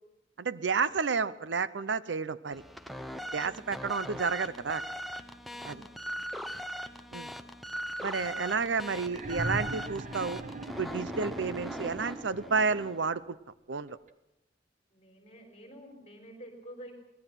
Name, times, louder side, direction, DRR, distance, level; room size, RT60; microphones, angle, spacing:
voice 1, 0.4-2.6 3.3-4.8 5.6-5.8 7.1-7.3 8.0-10.4 10.8-13.4 13.7-14.0, right 5 dB, 70° right, 15 dB, 0.7 m, -31 dB
sound 1, 2.5-13.1, equal, ahead, 0.8 m, -40 dB
voice 2, 3.3-3.6 5.5-6.1 14.9-16.9, equal, 35° left, 3 dB, 4.2 m, -50 dB
sound 2, 9.0-12.9 14.1-14.2, right 2 dB, 45° right, 1.1 m, -40 dB
23.5 x 19.0 x 6.0 m, 0.90 s
head